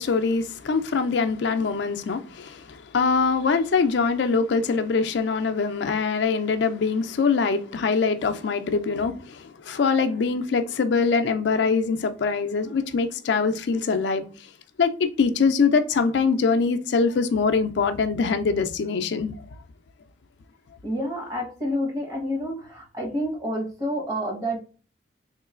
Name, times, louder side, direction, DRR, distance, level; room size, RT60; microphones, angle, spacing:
voice 1, 0.0-14.2 14.8-19.3, left 5 dB, 75° left, 0.4 m, -23 dB
voice 2, 20.8-24.6, equal, 20° right, 1.0 m, -29 dB
3.6 x 3.1 x 2.4 m
head